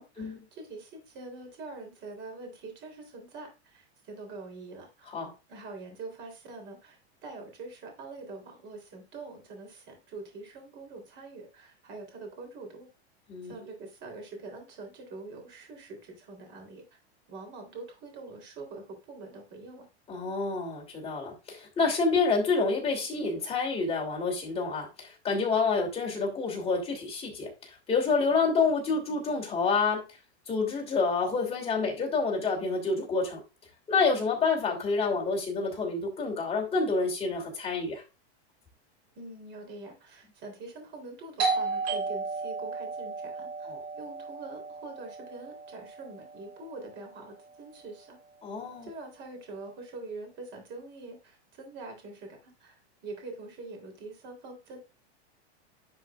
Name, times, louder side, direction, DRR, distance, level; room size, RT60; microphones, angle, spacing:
voice 1, 0.0-12.9 13.4-16.8 17.3-19.9 39.2-48.2 48.8-54.8, right 3 dB, 35° right, 3 dB, 3.5 m, -44 dB
voice 2, 20.1-30.0 30.5-33.4 33.9-38.0 43.7-43.8 48.4-48.9, left 4 dB, 20° left, -1 dB, 2.8 m, -28 dB
Doorbell, 41.4-46.8, right 4 dB, 60° right, 3.7 m, -34 dB
10.5 x 5.2 x 2.4 m, 0.28 s
supercardioid pair, 150°, 34 cm